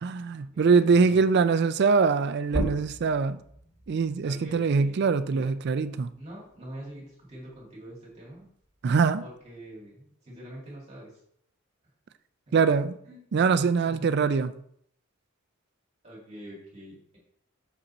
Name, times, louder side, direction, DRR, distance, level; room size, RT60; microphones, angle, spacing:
voice 1, 0.0-3.4 3.9-6.1 8.8-9.2 12.5-13.0 13.3-14.5, right 5 dB, 50° right, 11 dB, 0.4 m, -23 dB
voice 2, 0.5-1.3 4.2-5.5 6.2-8.5 9.2-11.2 12.5-12.6 13.0-13.2 13.7-14.4 16.0-17.2, right 1 dB, 30° right, -5 dB, 2.1 m, -44 dB
sound 1, 2.4-7.7 8.1-9.8, equal, ahead, 2.6 m, -38 dB
6.3 x 5.3 x 4.2 m, 0.67 s
head